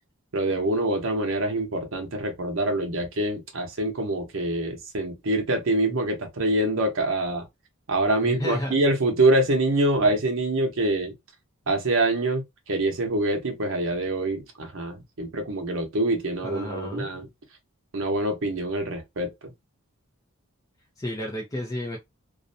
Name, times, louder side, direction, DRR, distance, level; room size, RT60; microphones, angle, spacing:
voice 1, 0.3-7.5 7.9-11.1 11.7-17.3 17.9-19.5, right 2 dB, 60° right, 0.8 m, -25 dB
voice 2, 8.2-8.8 16.4-17.1 21.0-22.0, left 1 dB, 15° left, 0.5 m, -32 dB
2.5 x 2.1 x 2.6 m
head